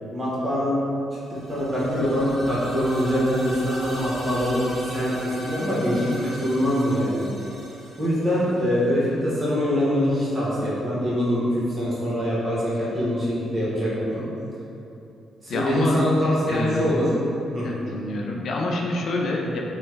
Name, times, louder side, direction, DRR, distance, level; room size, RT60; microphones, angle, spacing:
voice 1, 0.1-0.8 1.5-7.2 8.0-11.4 11.8-14.2 15.4-17.1 17.5-17.7, equal, 35° right, -8 dB, 1.2 m, -24 dB
sound 1, 1.2-9.0, equal, 60° right, 1.0 m, -38 dB
voice 2, 15.5-16.0 16.5-16.9 17.6-19.6, left 2 dB, 65° left, -1 dB, 0.3 m, -27 dB
3.1 x 2.2 x 3.1 m, 2.7 s
supercardioid pair, 50°, 0 cm